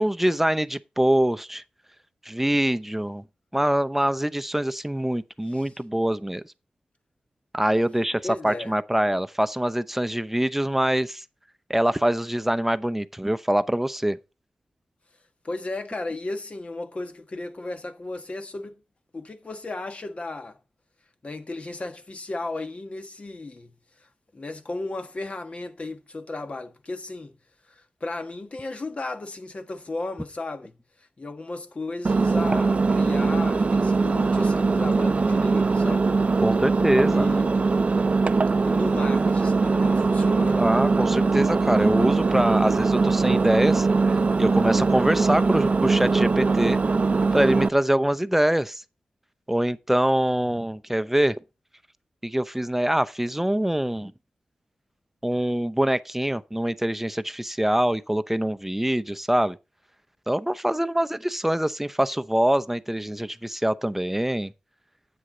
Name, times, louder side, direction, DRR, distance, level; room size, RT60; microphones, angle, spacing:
voice 1, 0.0-1.6 2.3-3.2 3.5-6.4 7.5-11.2 11.7-14.2 36.4-37.3 40.5-43.9 44.4-46.8 47.3-48.8 49.5-51.4 52.2-54.1 55.2-59.6 60.3-64.5, right 1 dB, 10° right, 0.7 m, -24 dB
voice 2, 8.2-8.7 15.4-18.8 19.1-20.6 21.2-23.7 24.0-24.1 24.3-27.3 27.7-30.8 31.2-36.1 37.0-37.9 38.6-40.6, left 2 dB, 45° left, 1.5 m, -35 dB
Engine, 32.0-47.7, right 4 dB, 50° right, 0.6 m, -21 dB
9.7 x 7.9 x 3.9 m
cardioid pair, 55°, 3 cm